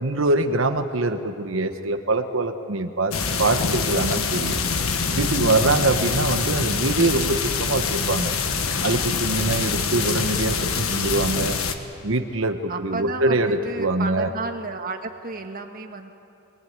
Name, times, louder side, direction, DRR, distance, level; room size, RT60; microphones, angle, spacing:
voice 1, 0.0-4.6 5.2-8.3 8.8-11.6 12.0-14.3, right 2 dB, 65° right, 7 dB, 1.1 m, -23 dB
sound 1, 3.1-11.7, left 5 dB, 85° left, 1.5 m, -25 dB
voice 2, 9.3-9.9 12.7-16.1, right 3 dB, 40° right, 4 dB, 1.7 m, -33 dB
23.0 x 19.5 x 9.5 m, 2.7 s
head